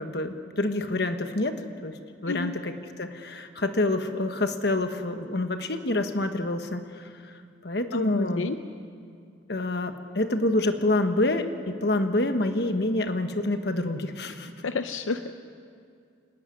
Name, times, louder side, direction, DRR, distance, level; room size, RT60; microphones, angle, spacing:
voice 1, 0.0-7.3 7.6-8.5 9.5-14.5, left 2 dB, 55° left, 7 dB, 1.3 m, -27 dB
voice 2, 7.9-8.6 14.6-15.3, left 3 dB, 85° left, 9 dB, 0.7 m, -29 dB
27.0 x 11.5 x 9.7 m, 2.3 s
head